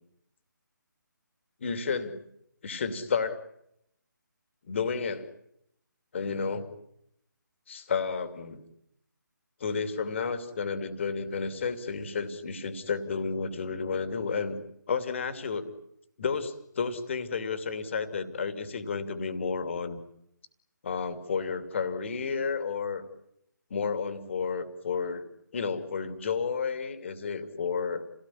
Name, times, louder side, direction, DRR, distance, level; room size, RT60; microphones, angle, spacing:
voice 1, 1.6-2.1 2.6-3.4 4.6-5.3 6.1-6.7 7.7-8.6 9.6-14.6 14.9-15.6 16.2-20.0 20.8-23.0 23.7-25.3 25.5-28.0, left 5 dB, 35° left, 10 dB, 2.8 m, -31 dB
29.5 x 18.0 x 10.0 m, 0.77 s
figure-of-eight pair, 150°, 11 cm